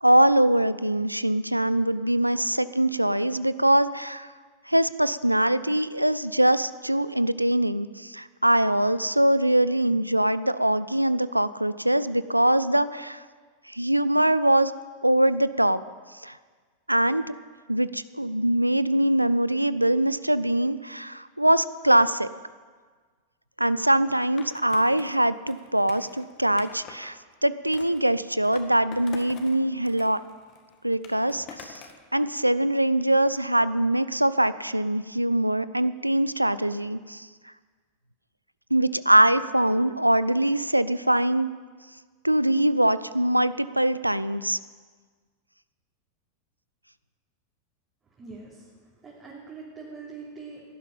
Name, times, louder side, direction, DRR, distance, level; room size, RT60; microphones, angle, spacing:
voice 1, 0.0-4.3 4.7-13.2 13.7-14.7 15.0-15.8 16.2-16.4 16.9-17.2 17.7-22.3 23.6-30.2 30.8-31.8 32.1-37.3 38.7-41.5 42.2-44.6, right 1 dB, 85° right, 16 dB, 0.4 m, -23 dB
Skateboard, 24.4-27.1 27.7-29.6 29.8-32.1, left 6 dB, 35° left, 1.8 m, -46 dB
voice 2, 48.2-50.6, right 4 dB, 25° right, -6 dB, 3.1 m, -43 dB
17.0 x 11.0 x 5.6 m, 1.5 s
figure-of-eight pair, 90°, 0 cm